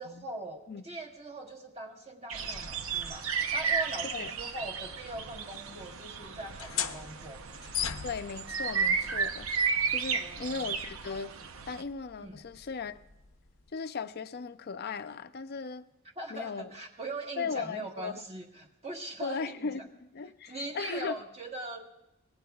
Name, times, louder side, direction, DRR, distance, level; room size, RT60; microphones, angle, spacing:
voice 1, 0.0-7.4 10.1-10.7 12.2-12.4 16.2-19.9 20.5-21.9, right 2 dB, 30° right, 1.4 m, -41 dB
sound 1, 2.3-11.8, right 5 dB, 85° right, 0.7 m, -33 dB
sound 2, 6.4-13.7, left 9 dB, 80° left, 0.7 m, -41 dB
voice 2, 8.0-9.5 9.9-11.3 11.7-13.0 13.7-15.9 16.3-16.7 17.4-18.1 19.2-21.2, left 5 dB, 50° left, 0.5 m, -37 dB
23.5 x 18.5 x 2.3 m
head